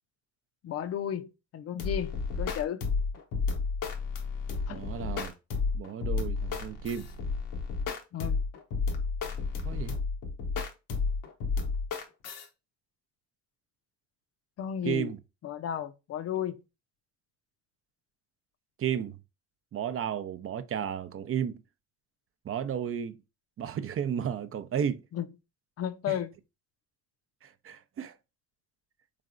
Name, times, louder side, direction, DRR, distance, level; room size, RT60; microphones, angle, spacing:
voice 1, 0.6-2.8 4.7-4.8 8.1-8.4 14.6-15.1 15.4-16.6 25.1-25.3 25.8-26.3, left 9 dB, 50° left, 0.5 m, -33 dB
sound 1, 1.8-12.5, left 4 dB, 90° left, 0.9 m, -31 dB
voice 2, 4.7-5.3 5.7-7.1 9.6-10.0 14.8-15.2 18.8-19.2 19.7-21.6 22.4-23.2 23.6-25.0 26.1-26.2 27.4-28.2, right 8 dB, 45° right, 0.5 m, -33 dB
3.8 x 3.3 x 2.4 m
cardioid pair, 80°, 30 cm